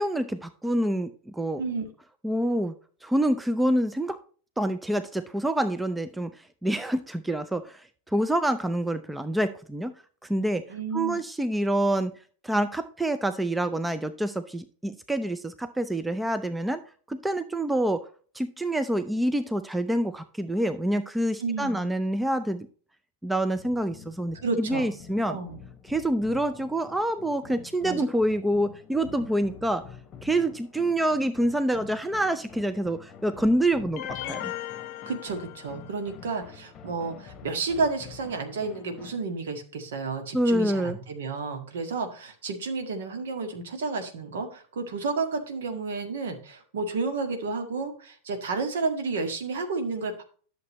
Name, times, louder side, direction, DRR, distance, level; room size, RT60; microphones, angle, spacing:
voice 1, 0.0-1.6 2.2-2.7 3.0-4.2 4.6-6.3 6.6-9.9 10.3-10.6 10.9-12.1 12.4-16.8 17.1-18.1 18.3-22.7 23.2-25.4 25.9-29.9 30.2-34.5 40.3-41.0, right 1 dB, 5° right, 11 dB, 0.5 m, -27 dB
voice 2, 10.7-11.2 21.4-21.9 24.3-24.9 25.3-25.6 27.8-28.0 35.0-50.2, right 4 dB, 60° right, 6 dB, 1.7 m, -31 dB
sound 1, 23.6-39.2, left 7 dB, 25° left, 1.2 m, -48 dB
sound 2, 34.0-36.1, left 12 dB, 45° left, 0.8 m, -37 dB
11.0 x 6.9 x 3.0 m, 0.42 s
figure-of-eight pair, 90°, 0 cm